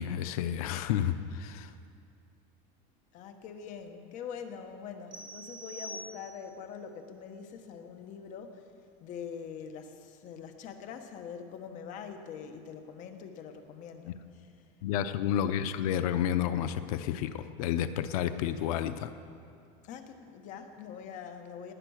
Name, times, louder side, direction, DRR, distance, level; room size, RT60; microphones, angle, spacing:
voice 1, 0.0-1.7 14.8-19.1, left 10 dB, 85° left, 11 dB, 0.8 m, -30 dB
voice 2, 3.1-8.7 9.0-14.5 15.1-15.2 19.8-21.7, left 7 dB, 45° left, 6 dB, 1.3 m, -44 dB
sound 1, 5.1-6.6, right 1 dB, 25° right, 1.7 m, -45 dB
19.0 x 10.0 x 6.5 m, 2.4 s
cardioid pair, 155°, 18 cm